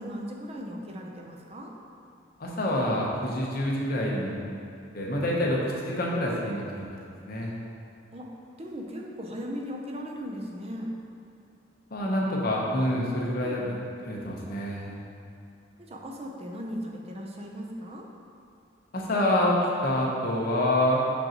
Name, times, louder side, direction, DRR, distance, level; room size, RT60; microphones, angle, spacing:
voice 1, 0.0-1.7 5.4-5.5 8.1-8.3 8.6-10.9 13.4-13.7 15.8-18.1, equal, 35° right, 0 dB, 0.6 m, -37 dB
voice 2, 2.4-4.4 4.9-5.6 5.9-7.0 7.3-7.5 11.9-13.8 14.0-15.0 18.9-19.6 19.8-21.0, left 1 dB, 50° left, -3 dB, 0.9 m, -27 dB
6.3 x 5.2 x 3.0 m, 2.6 s
head